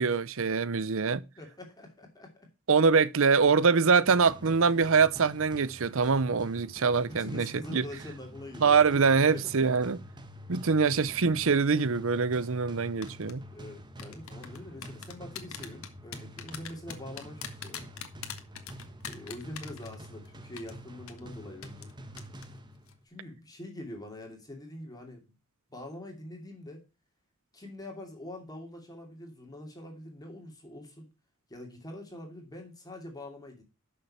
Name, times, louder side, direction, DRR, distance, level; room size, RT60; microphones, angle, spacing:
voice 1, 0.0-1.2 2.7-7.5 7.7-7.8 8.6-10.0 10.5-13.4, right 5 dB, 65° right, 0.7 m, -24 dB
voice 2, 1.4-2.5 7.1-9.5 13.5-17.9 19.1-21.9 23.0-25.4 25.7-26.9 27.5-31.1 31.5-33.6, left 1 dB, 20° left, 2.7 m, -44 dB
sound 1, 4.1-23.0, equal, 20° right, 1.4 m, -47 dB
sound 2, 13.0-13.3 14.0-20.3 20.6-20.7 21.1-21.2 21.6-21.9 22.2-22.5 22.8-22.9, left 8 dB, 70° left, 1.6 m, -41 dB
11.5 x 6.7 x 4.2 m
head